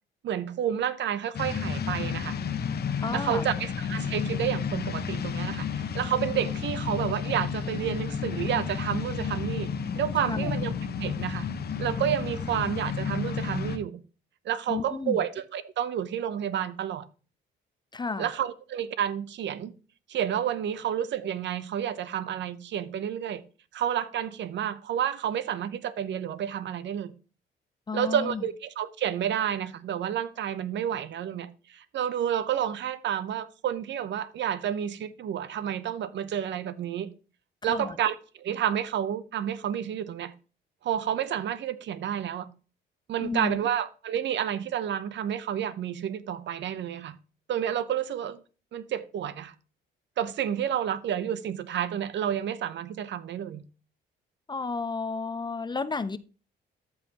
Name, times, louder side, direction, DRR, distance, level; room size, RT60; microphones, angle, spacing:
voice 1, 0.2-2.4 3.1-9.7 10.0-10.7 11.0-11.5 11.8-14.0 14.4-17.1 18.2-19.7 20.1-23.4 23.7-27.1 27.9-37.1 37.6-40.3 40.8-42.5 43.1-47.2 47.5-48.4 48.7-49.5 50.2-53.6, right 9 dB, 65° right, 0.7 m, -30 dB
sound 1, 1.3-13.8, left 6 dB, 55° left, 0.9 m, -31 dB
voice 2, 3.0-3.5 10.3-10.6 14.7-15.2 17.9-18.3 27.9-28.4 37.6-38.0 43.2-43.6 54.5-56.2, left 4 dB, 20° left, 0.5 m, -32 dB
13.5 x 5.4 x 2.9 m
cardioid pair, 90°, 20 cm